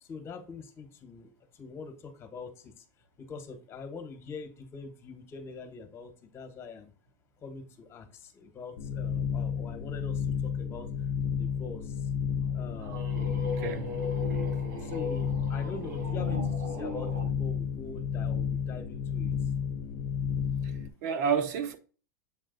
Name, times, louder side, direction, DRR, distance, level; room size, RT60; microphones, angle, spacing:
voice 1, 0.0-2.8 3.2-6.9 7.4-10.9 11.4-12.1 12.5-13.2 14.8-19.3, left 4 dB, 25° left, 1.3 m, -44 dB
sound 1, 8.8-20.9, left 7 dB, 75° left, 0.8 m, -32 dB
sound 2, 12.4-17.3, left 2 dB, 85° right, 3.6 m, -38 dB
voice 2, 13.5-14.1 21.0-21.8, right 6 dB, 60° right, 1.2 m, -30 dB
7.5 x 3.8 x 4.0 m
supercardioid pair, 140°, 10 cm